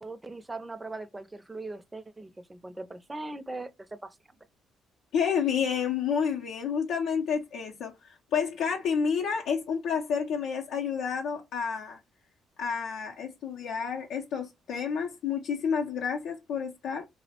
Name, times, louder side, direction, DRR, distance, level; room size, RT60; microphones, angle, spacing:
voice 1, 0.0-4.2, right 2 dB, 15° right, 0.4 m, -40 dB
voice 2, 5.1-12.0 12.6-17.1, left 6 dB, 85° left, 0.5 m, -30 dB
2.9 x 2.0 x 2.8 m
cardioid pair, 90°, 0 cm